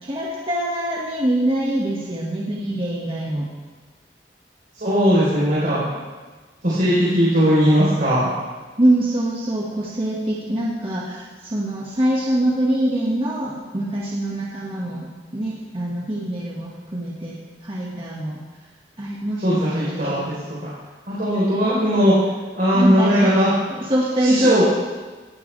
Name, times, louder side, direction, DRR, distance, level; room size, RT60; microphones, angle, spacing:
voice 1, 0.0-3.5 8.8-17.3 17.6-18.4 19.0-20.2 22.7-23.3 23.7-24.6, right 1 dB, 30° right, -5 dB, 1.8 m, -24 dB
voice 2, 4.7-5.8 6.6-8.3 19.4-20.2 20.6-20.7 21.1-22.1 22.5-23.5 24.2-24.7, equal, 50° right, -9 dB, 4.0 m, -18 dB
18.5 x 12.0 x 3.4 m, 1.3 s
head